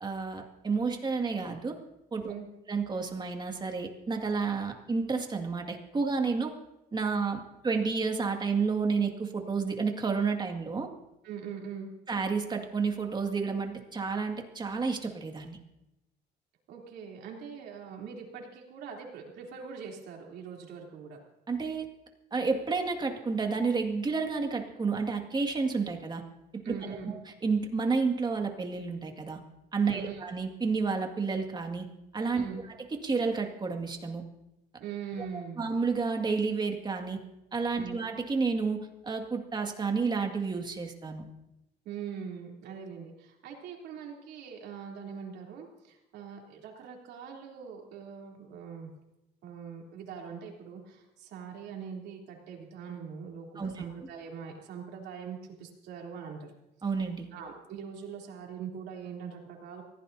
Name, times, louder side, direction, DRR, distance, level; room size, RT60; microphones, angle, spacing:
voice 1, 0.0-1.8 2.1-2.3 2.7-6.5 6.9-10.9 12.1-15.6 21.5-21.9 22.3-26.2 26.5-29.4 29.7-31.9 32.1-32.5 32.9-34.2 35.6-37.2 37.5-41.2 53.6-53.9 56.8-57.3, right 4 dB, 25° right, 4 dB, 2.1 m, -30 dB
voice 2, 11.2-11.9 16.7-21.2 26.6-27.1 29.8-30.2 32.3-32.6 34.8-35.7 37.7-38.0 41.8-48.9 49.4-56.5 57.3-59.8, right 7 dB, 80° right, 0 dB, 3.3 m, -42 dB
24.0 x 16.0 x 2.8 m, 0.90 s
cardioid pair, 110°, 17 cm